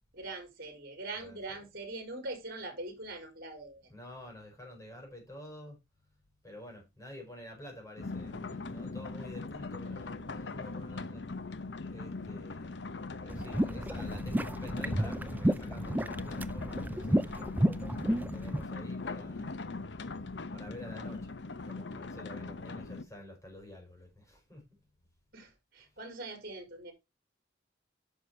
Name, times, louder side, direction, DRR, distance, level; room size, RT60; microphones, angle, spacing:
voice 1, 0.1-3.8 25.3-26.9, right 2 dB, 50° right, 4.6 m, -42 dB
voice 2, 1.2-1.6 3.9-5.8 6.4-11.2 11.9-17.4 18.1-19.6 20.5-21.3 21.6-24.7, left 1 dB, 15° left, 5.1 m, -49 dB
sound 1, 8.0-23.0, left 3 dB, 60° left, 0.7 m, -40 dB
sound 2, 13.3-18.6, right 1 dB, 10° right, 0.4 m, -31 dB
10.5 x 6.4 x 4.4 m
head